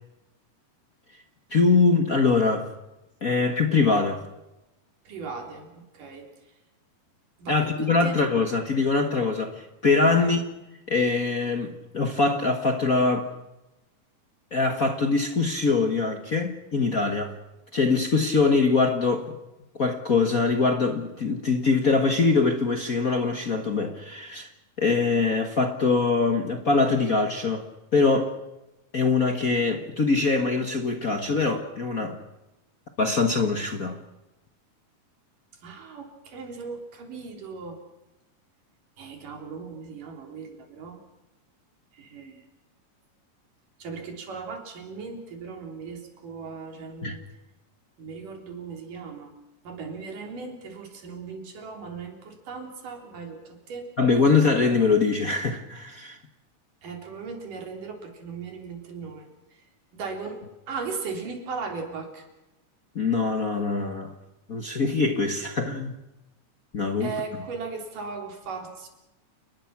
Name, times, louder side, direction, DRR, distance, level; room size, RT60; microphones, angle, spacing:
voice 1, 1.5-2.7 3.2-4.2 7.5-10.4 10.9-13.3 14.5-17.4 17.7-19.3 19.7-24.5 24.8-27.7 27.9-28.3 28.9-32.2 33.0-34.0 47.0-47.2 54.0-56.2 62.9-64.1 64.5-65.9 66.7-67.1, left 4 dB, 45° left, 1.1 m, -23 dB
voice 2, 5.1-6.3 7.4-7.7 8.0-8.2 10.2-10.3 35.6-37.8 39.0-41.0 42.0-42.4 43.8-47.2 48.0-49.3 49.7-53.9 56.8-59.3 59.9-60.4 60.7-62.2 67.0-68.9, right 4 dB, 75° right, 5.2 m, -37 dB
29.5 x 20.0 x 6.0 m
omnidirectional pair, 3.8 m